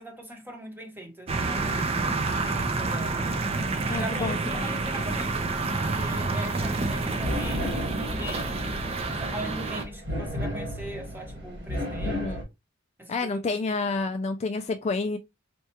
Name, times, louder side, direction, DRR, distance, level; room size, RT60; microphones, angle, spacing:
voice 1, 0.0-3.3 3.9-8.8 9.2-12.3 13.0-13.8, equal, 10° right, 0.9 m, -40 dB
sound 1, 1.3-9.9, right 3 dB, 30° right, 0.5 m, -28 dB
voice 2, 3.9-4.6 12.0-12.4 13.1-15.2, left 3 dB, 35° left, 0.3 m, -29 dB
sound 2, 6.7-12.4, equal, 60° right, 1.7 m, -34 dB
4.3 x 2.3 x 2.8 m
head